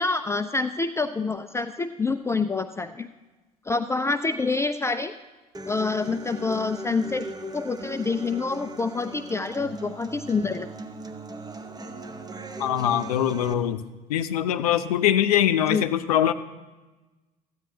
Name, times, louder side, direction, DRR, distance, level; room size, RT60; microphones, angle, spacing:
voice 1, 0.0-3.1 3.7-5.1 5.7-7.3 7.5-10.7 15.7-15.8, left 4 dB, 15° left, 10 dB, 0.4 m, -27 dB
Human voice / Acoustic guitar, 5.5-13.5, right 1 dB, 20° right, 0.9 m, -39 dB
voice 2, 12.6-13.8 14.1-16.3, left 10 dB, 75° left, 11 dB, 0.5 m, -22 dB
14.0 x 9.4 x 2.8 m, 1.2 s
figure-of-eight pair, 60°, 20 cm